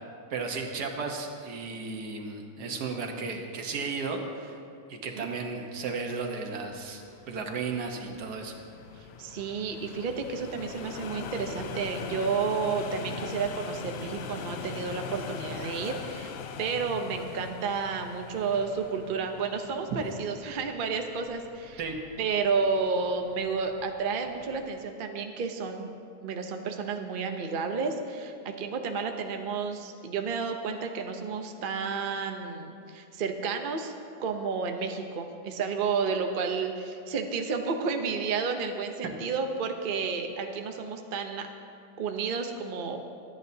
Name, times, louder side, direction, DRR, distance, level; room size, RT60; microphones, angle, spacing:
voice 1, 0.3-4.6 4.9-8.5 21.8-22.0, right 4 dB, 80° right, 3 dB, 1.7 m, -34 dB
sound 1, 6.6-24.9, left 7 dB, 70° left, 0.6 m, -42 dB
voice 2, 9.0-21.8 22.2-25.9 26.2-33.9 34.2-41.5 42.0-43.0, right 5 dB, 45° right, 5 dB, 0.7 m, -31 dB
24.0 x 9.6 x 2.8 m, 2.5 s
omnidirectional pair, 1.7 m